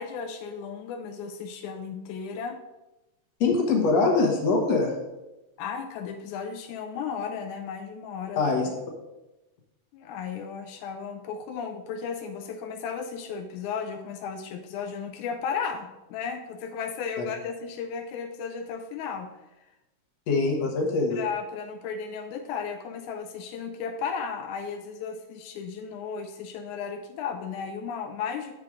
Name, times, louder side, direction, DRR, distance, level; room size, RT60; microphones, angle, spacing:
voice 1, 0.0-2.6 5.6-8.4 9.9-19.3 21.1-28.5, left 6 dB, 90° left, 5 dB, 2.0 m, -34 dB
voice 2, 3.4-4.9 8.4-8.7 17.2-17.3 20.3-21.2, left 3 dB, 65° left, 1 dB, 2.2 m, -23 dB
7.5 x 6.3 x 3.6 m, 1.0 s
omnidirectional pair, 3.4 m